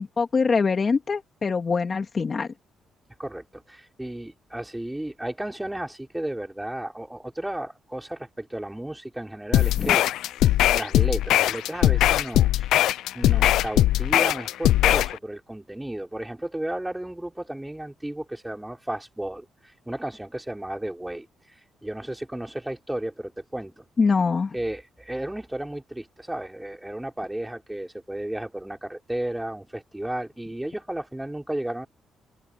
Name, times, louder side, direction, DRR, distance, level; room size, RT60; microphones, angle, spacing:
voice 1, 0.0-2.5 9.8-10.0 24.0-24.5, left 4 dB, 35° left, 2.7 m, -23 dB
voice 2, 3.2-10.1 10.7-12.7 13.1-21.3 21.8-23.9 24.5-31.9, right 1 dB, 10° right, 5.3 m, -33 dB
sound 1, 9.5-15.1, left 13 dB, 85° left, 0.5 m, -20 dB
open air
cardioid pair, 90°, 0 cm